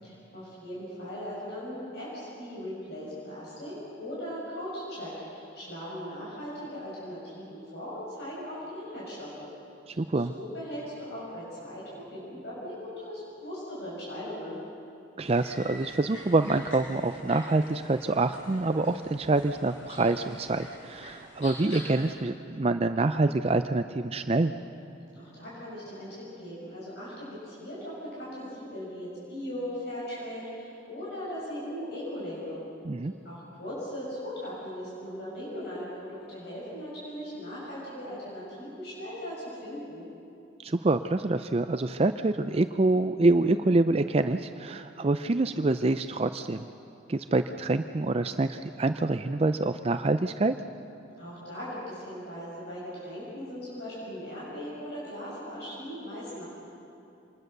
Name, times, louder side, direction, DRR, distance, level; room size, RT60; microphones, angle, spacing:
voice 1, 0.0-9.5 9.9-14.6 25.1-32.6 33.2-40.0 51.2-56.4, equal, 55° left, -7 dB, 6.7 m, -39 dB
voice 2, 9.9-10.3 15.2-24.5 32.8-33.1 40.6-46.7 47.1-50.5, right 2 dB, 30° right, 9 dB, 0.4 m, -26 dB
sound 1, 15.2-22.1, left 1 dB, 80° left, 7.0 m, -46 dB
26.5 x 20.5 x 6.7 m, 2.8 s
head